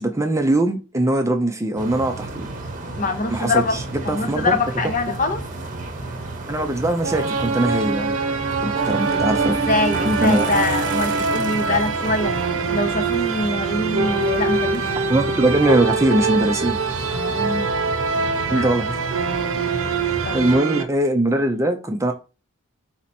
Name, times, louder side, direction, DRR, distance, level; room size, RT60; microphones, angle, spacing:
voice 1, 0.0-2.5 3.3-4.6 5.1-5.2 6.5-8.2 8.6-9.5 10.0-10.5 15.1-16.8 18.5-19.0 20.3-22.1, right 1 dB, 15° right, 0.5 m, -21 dB
sound 1, 1.8-20.6, right 2 dB, 35° right, 0.8 m, -32 dB
voice 2, 3.0-3.8 4.0-5.4 9.5-12.3 12.7-14.9 17.1-17.8 18.1-18.7 20.2-20.4, left 2 dB, 35° left, 0.6 m, -24 dB
sound 2, 7.0-20.8, right 4 dB, 65° right, 0.7 m, -24 dB
4.2 x 2.9 x 4.2 m
head